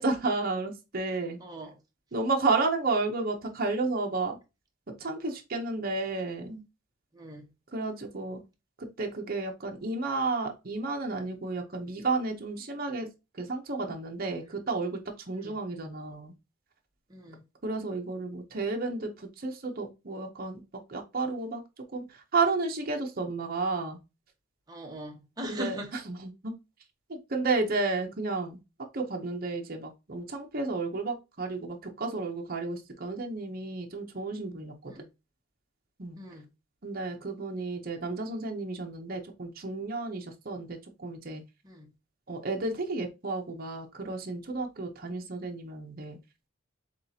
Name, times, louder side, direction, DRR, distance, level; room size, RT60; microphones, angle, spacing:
voice 1, 0.0-1.4 2.1-4.4 5.0-6.6 7.7-8.4 8.8-13.1 13.3-15.0 15.3-16.3 17.6-20.6 20.9-21.6 21.9-24.0 25.4-26.5 27.1-28.6 28.9-34.9 36.0-36.2 36.8-41.4 42.3-46.2, right 3 dB, 45° right, 0.8 m, -32 dB
voice 2, 1.4-1.8 7.1-7.5 15.3-15.6 17.1-17.4 24.7-25.9 34.9-35.1 36.2-36.4 41.6-41.9, left 1 dB, 20° right, 1.0 m, -40 dB
7.2 x 2.4 x 2.8 m
head